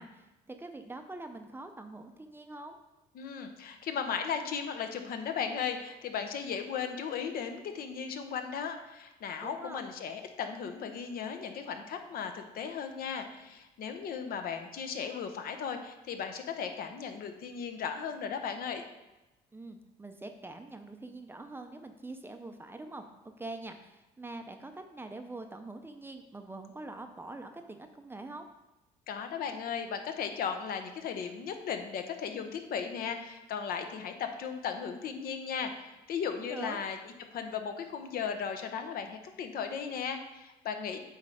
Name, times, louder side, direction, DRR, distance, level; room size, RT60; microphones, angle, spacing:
voice 1, 0.0-2.8 9.4-9.8 19.5-28.5 36.4-36.8, right 2 dB, 15° right, 6 dB, 0.5 m, -44 dB
voice 2, 3.1-18.8 29.1-35.7 36.1-37.0 37.3-41.0, left 7 dB, 60° left, 6 dB, 0.8 m, -36 dB
8.0 x 3.3 x 4.9 m, 0.99 s
cardioid pair, 110°, 17 cm